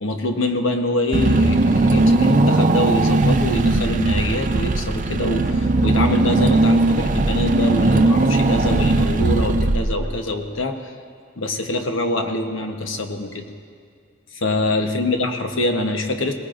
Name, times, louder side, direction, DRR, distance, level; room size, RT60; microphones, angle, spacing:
voice 1, 0.0-10.8 11.4-13.4 14.4-16.3, left 2 dB, 75° left, 5 dB, 1.0 m, -24 dB
Car / Engine, 1.1-10.3, right 2 dB, 40° right, 0.4 m, -18 dB
19.5 x 18.0 x 2.5 m, 2.1 s
head